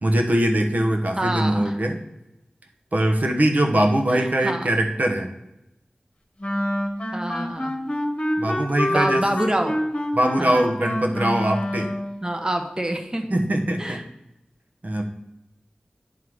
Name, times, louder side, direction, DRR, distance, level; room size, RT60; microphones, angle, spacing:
voice 1, 0.0-2.0 2.9-5.3 8.4-9.2 10.1-11.9 13.3-14.0 14.8-15.0, right 1 dB, 60° right, 3 dB, 1.1 m, -22 dB
voice 2, 1.2-1.7 4.1-4.7 7.1-7.8 8.9-9.8 10.4-10.6 12.2-13.3 13.8-14.0, right 1 dB, 25° right, 5 dB, 1.0 m, -26 dB
Wind instrument woodwind instrument, 6.4-12.1, left 1 dB, 40° left, 1.1 m, -26 dB
9.4 x 3.8 x 4.7 m, 0.89 s
wide cardioid pair, 55°, 3 cm